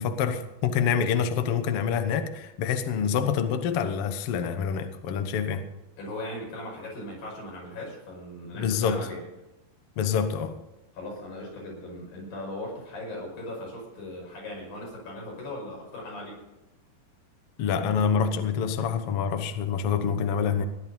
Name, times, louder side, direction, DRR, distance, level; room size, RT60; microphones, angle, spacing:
voice 1, 0.0-5.7 8.6-9.1 10.0-10.6 17.6-20.7, left 7 dB, 85° left, 1.3 m, -26 dB
voice 2, 6.0-9.3 10.9-16.4, left 1 dB, 65° left, 7.1 m, -38 dB
16.5 x 11.0 x 5.4 m
omnidirectional pair, 4.4 m